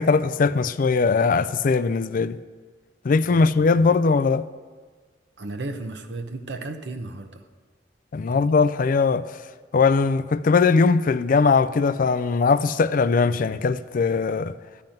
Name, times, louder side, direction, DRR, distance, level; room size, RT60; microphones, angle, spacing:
voice 1, 0.0-2.4 3.0-4.5 8.1-9.3 9.7-14.5, left 4 dB, 50° left, 0.4 m, -20 dB
voice 2, 3.2-3.9 5.4-7.4 8.2-8.5, right 2 dB, 70° right, 0.8 m, -35 dB
12.0 x 5.8 x 9.0 m
head